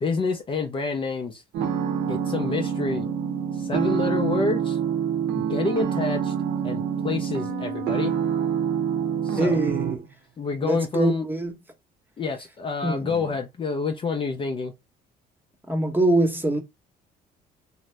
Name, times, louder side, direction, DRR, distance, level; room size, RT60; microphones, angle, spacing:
voice 1, 0.0-1.4 2.1-3.1 3.6-4.8 5.4-6.3 6.6-8.1 9.2-9.6 10.4-11.3 12.2-14.7, left 4 dB, 30° left, 0.5 m, -28 dB
sound 1, 1.5-10.0, right 8 dB, 85° right, 0.7 m, -26 dB
voice 2, 9.4-10.1 10.6-11.6 12.8-13.4 15.7-16.6, right 1 dB, 10° right, 0.9 m, -24 dB
2.6 x 2.0 x 3.2 m
cardioid pair, 110°, 17 cm